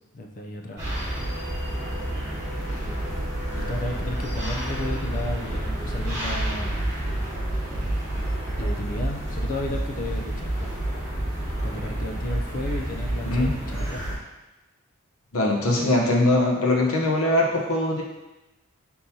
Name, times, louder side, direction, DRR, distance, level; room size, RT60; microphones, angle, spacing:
voice 1, 0.1-0.8 3.5-6.9 8.6-10.7 11.6-14.2, left 2 dB, 40° left, 2 dB, 0.5 m, -34 dB
sound 1, 0.8-14.2, right 1 dB, 15° right, 1.4 m, -29 dB
voice 2, 15.3-18.0, left 1 dB, 85° left, -1 dB, 0.8 m, -21 dB
4.3 x 3.7 x 2.7 m, 1.0 s
head